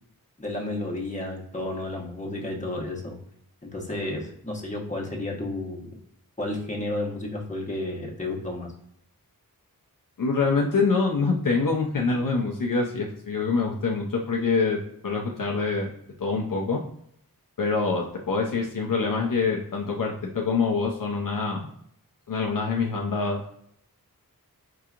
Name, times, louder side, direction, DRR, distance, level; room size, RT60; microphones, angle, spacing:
voice 1, 0.4-3.2 3.6-5.9 6.4-8.7, left 2 dB, 20° left, -2 dB, 1.1 m, -32 dB
voice 2, 10.2-14.8 15.0-15.9 16.2-16.8 17.6-21.7 22.3-23.4, left 4 dB, 65° left, -1 dB, 0.6 m, -25 dB
4.7 x 2.8 x 2.4 m, 0.71 s
wide cardioid pair, 70°, 36 cm